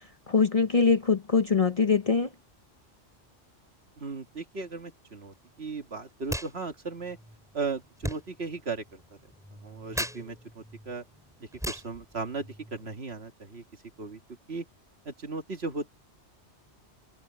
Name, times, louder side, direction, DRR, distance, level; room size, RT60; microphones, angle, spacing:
voice 1, 0.3-2.3, left 5 dB, 40° left, 0.7 m, -23 dB
voice 2, 4.0-7.2 7.5-9.2 9.6-11.0 11.4-13.6 14.0-14.2 14.5-14.7 15.1-15.9, right 4 dB, 65° right, 2.1 m, -36 dB
sound 1, 6.2-6.5 6.8-13.0, equal, 5° right, 5.0 m, -39 dB
omnidirectional pair, 1.1 m